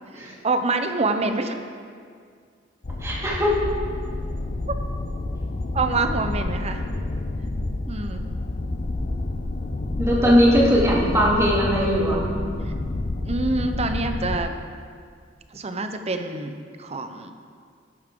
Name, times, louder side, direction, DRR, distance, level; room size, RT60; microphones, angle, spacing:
voice 1, 0.1-1.6 4.7-4.8 5.7-6.8 7.9-8.2 9.0-9.1 10.1-10.4 12.6-12.7 13.3-14.6 15.5-16.5 16.8-17.3, right 3 dB, 35° right, 7 dB, 0.7 m, -26 dB
sound 1, 2.8-14.4, left 2 dB, 40° left, 0.6 m, -29 dB
voice 2, 3.0-3.5 10.0-12.2, equal, 15° right, -5 dB, 2.5 m, -19 dB
12.5 x 11.0 x 3.8 m, 2.1 s
head